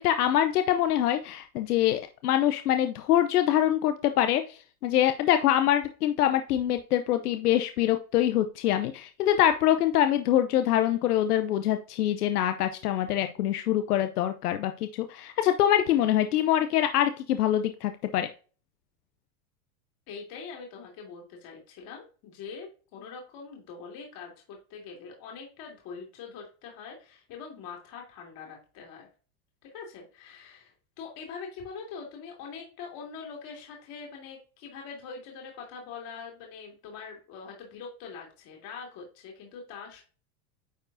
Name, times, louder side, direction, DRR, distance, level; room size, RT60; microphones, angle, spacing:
voice 1, 0.0-18.3, left 11 dB, 85° left, 9 dB, 0.7 m, -24 dB
voice 2, 20.1-29.1 29.6-40.0, left 5 dB, 50° left, 0 dB, 2.5 m, -43 dB
9.4 x 4.5 x 2.7 m, 0.37 s
hypercardioid pair, 105°, 45 cm